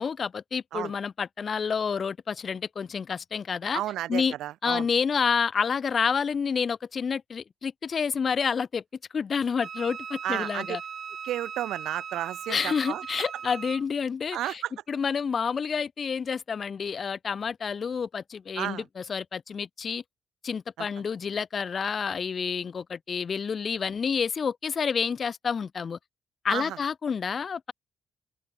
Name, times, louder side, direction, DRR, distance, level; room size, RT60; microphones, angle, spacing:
voice 1, 0.0-3.8 4.1-4.4 4.6-8.8 9.1-10.8 12.5-14.6 14.9-20.0 20.4-26.0 26.4-27.7, left 6 dB, 40° left, 2.3 m, -29 dB
voice 2, 3.7-4.9 10.2-10.7 11.2-13.0 14.3-14.7 18.6-18.8 20.8-20.9 26.5-26.8, right 13 dB, 85° right, 2.7 m, -32 dB
Wind instrument woodwind instrument, 9.6-13.8, right 7 dB, 45° right, 3.7 m, -39 dB
open air
cardioid pair, 105°, 0 cm